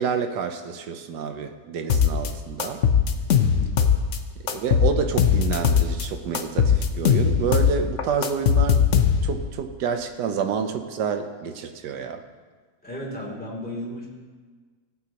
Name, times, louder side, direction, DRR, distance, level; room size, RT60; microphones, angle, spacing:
voice 1, 0.0-2.8 4.5-8.9 9.2-12.2, right 6 dB, 75° right, 7 dB, 1.3 m, -28 dB
sound 1, 1.9-2.3 2.6-4.2 4.5-6.0 6.3-9.4, left 7 dB, 60° left, 0.9 m, -20 dB
voice 2, 3.4-3.7 12.8-14.1, equal, 5° left, -5 dB, 2.7 m, -34 dB
18.0 x 8.3 x 2.9 m, 1.5 s
omnidirectional pair, 1.9 m